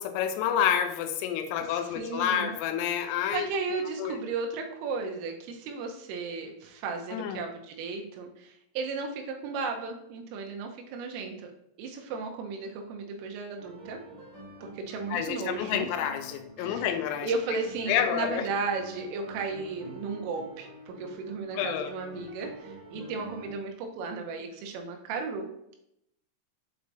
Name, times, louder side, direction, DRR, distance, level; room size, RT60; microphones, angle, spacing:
voice 1, 0.0-3.5 4.0-4.2 7.1-7.4 15.1-17.3 17.9-18.4 21.5-21.9, left 9 dB, 85° left, 7 dB, 3.3 m, -29 dB
voice 2, 1.6-2.5 2.9-11.5 11.8-14.0 14.6-15.9 16.6-16.8 17.2-25.8, right 4 dB, 85° right, 3 dB, 3.3 m, -35 dB
sound 1, 13.6-23.5, equal, 55° right, 2.2 m, -47 dB
7.8 x 4.6 x 2.7 m, 0.78 s
omnidirectional pair, 5.9 m